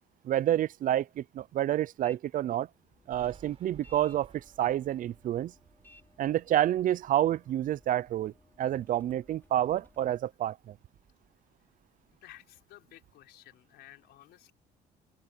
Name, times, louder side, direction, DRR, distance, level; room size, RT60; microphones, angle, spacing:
voice 1, 0.2-2.7 3.1-5.5 6.2-8.3 8.6-10.7, right 12 dB, 55° right, 0.5 m, -29 dB
sound 1, 2.0-2.2 2.6-10.1, left 1 dB, 10° left, 5.2 m, -62 dB
Thunder, 3.1-8.5 8.9-10.4 10.6-12.3, right 6 dB, 35° right, 4.6 m, -60 dB
voice 2, 12.2-14.5, left 14 dB, 80° left, 4.4 m, -54 dB
cardioid pair, 110°, 17 cm